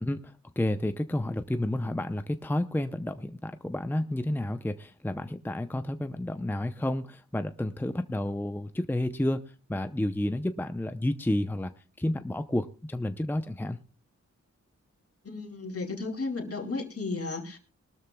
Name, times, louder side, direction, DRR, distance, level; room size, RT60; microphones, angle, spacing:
voice 1, 0.0-9.4 9.7-11.7 12.0-13.8, left 1 dB, 5° left, 9 dB, 0.6 m, -30 dB
voice 2, 15.2-17.6, left 3 dB, 50° left, 4 dB, 2.6 m, -34 dB
22.0 x 13.0 x 2.3 m, 0.33 s
wide cardioid pair, 85°, 29 cm